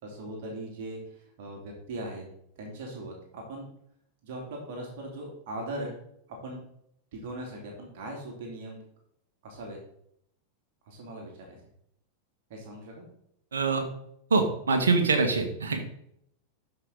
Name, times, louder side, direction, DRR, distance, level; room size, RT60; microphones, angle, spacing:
voice 1, 0.0-1.0 1.4-2.2 2.6-3.7 4.2-5.9 6.4-6.6 7.1-8.8 9.4-9.8 10.9-11.6 12.5-13.1, right 1 dB, 50° right, 0 dB, 2.9 m, -39 dB
voice 2, 13.5-13.9 14.3-15.8, right 4 dB, 70° right, 5 dB, 1.8 m, -24 dB
13.0 x 5.8 x 4.1 m, 0.71 s
figure-of-eight pair, 90°, 0 cm